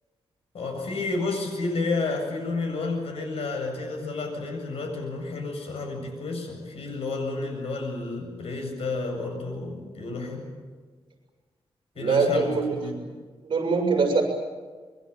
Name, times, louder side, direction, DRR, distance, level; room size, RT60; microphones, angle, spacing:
voice 1, 0.5-10.5 12.0-13.0, left 3 dB, 75° left, 3 dB, 7.7 m, -31 dB
voice 2, 12.0-12.8 13.5-14.2, right 4 dB, 50° right, 3 dB, 6.8 m, -23 dB
26.0 x 22.5 x 9.2 m, 1.5 s
wide cardioid pair, 165°, 10 cm